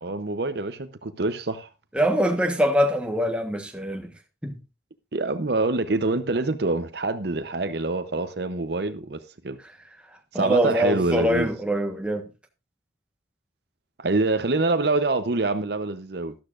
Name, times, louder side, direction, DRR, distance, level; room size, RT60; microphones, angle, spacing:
voice 1, 0.0-1.7 5.1-9.6 10.3-11.5 14.0-16.3, right 2 dB, 60° right, 0.8 m, -25 dB
voice 2, 1.9-4.1 4.4-4.6 10.3-12.3, equal, 5° right, 1.2 m, -23 dB
13.0 x 12.0 x 2.5 m
head